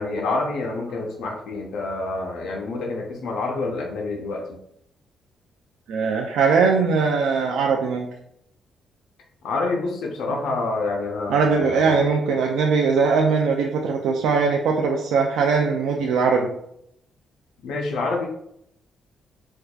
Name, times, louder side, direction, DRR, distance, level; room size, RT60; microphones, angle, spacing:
voice 1, 0.0-4.6 9.4-12.1 17.6-18.3, left 3 dB, 80° left, 1 dB, 0.5 m, -27 dB
voice 2, 5.9-8.1 10.3-10.4 11.3-16.5, right 5 dB, 85° right, 1 dB, 0.3 m, -20 dB
4.4 x 2.3 x 2.3 m, 0.74 s
cardioid pair, 85°, 0 cm